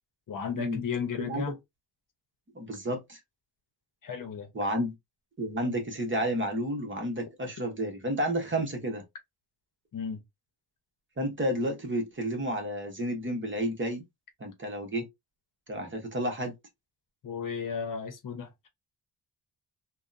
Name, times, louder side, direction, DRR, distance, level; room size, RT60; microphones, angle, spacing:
voice 1, 0.3-1.5 4.0-4.5 9.9-10.2 17.2-18.7, left 6 dB, 50° left, 0.8 m, -34 dB
voice 2, 1.2-1.5 2.5-3.2 4.5-4.9 5.4-9.0 11.2-14.0 14.4-15.1 15.7-16.5, equal, 30° right, 1.0 m, -31 dB
3.5 x 2.2 x 2.6 m
wide cardioid pair, 120°, 40 cm